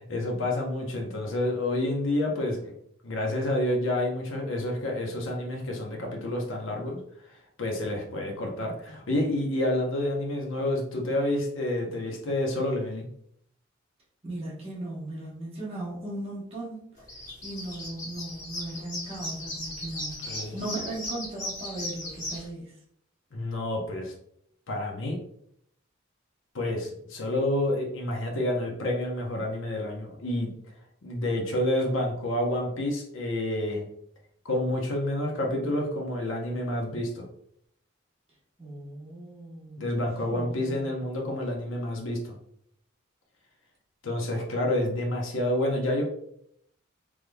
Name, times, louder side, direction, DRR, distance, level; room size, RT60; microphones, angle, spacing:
voice 1, 0.1-2.7 3.0-7.0 7.6-13.1 20.2-20.6 23.3-24.1 24.7-25.2 26.5-30.5 31.0-33.9 34.4-37.3 39.8-42.3 44.0-46.0, left 1 dB, 70° left, 1 dB, 0.7 m, -29 dB
voice 2, 14.2-16.9 17.4-22.7 38.6-41.0, right 2 dB, 30° right, -5 dB, 1.0 m, -38 dB
sound 1, 17.0-22.4, left 1 dB, 35° left, 1.3 m, -37 dB
3.4 x 3.2 x 2.2 m, 0.71 s
head